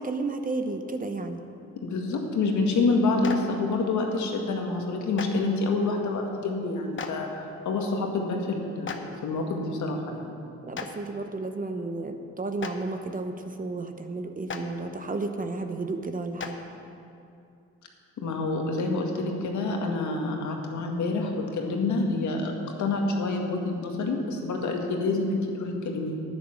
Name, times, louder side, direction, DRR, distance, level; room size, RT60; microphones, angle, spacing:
voice 1, 0.0-1.4 10.7-16.6, right 3 dB, 30° right, 7 dB, 0.9 m, -32 dB
voice 2, 1.8-10.5 18.2-22.5 22.8-26.2, left 3 dB, 70° left, 1 dB, 1.8 m, -27 dB
Clapping, 3.2-3.3 5.1-5.3 7.0-7.1 8.8-9.0 10.7-10.8 12.6-12.7 14.5-14.6 16.4-16.5, left 6 dB, 40° left, 1.0 m, -33 dB
10.0 x 9.7 x 6.5 m, 2.6 s
cardioid pair, 90°, 30 cm